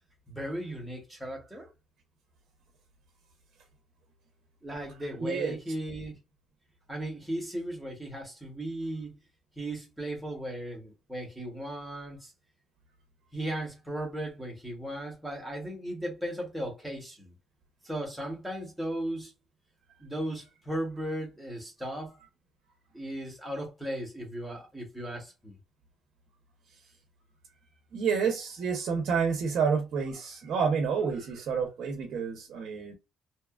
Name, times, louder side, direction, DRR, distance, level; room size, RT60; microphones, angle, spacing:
voice 1, 0.3-1.7 4.6-6.2 6.9-9.2 9.6-12.3 13.3-17.3 17.8-19.3 20.0-22.1 22.9-25.6, right 1 dB, ahead, 0.8 m, -36 dB
voice 2, 5.2-5.5 27.9-32.9, right 6 dB, 50° right, 0.6 m, -29 dB
2.7 x 2.3 x 2.2 m
cardioid pair, 175°, 0 cm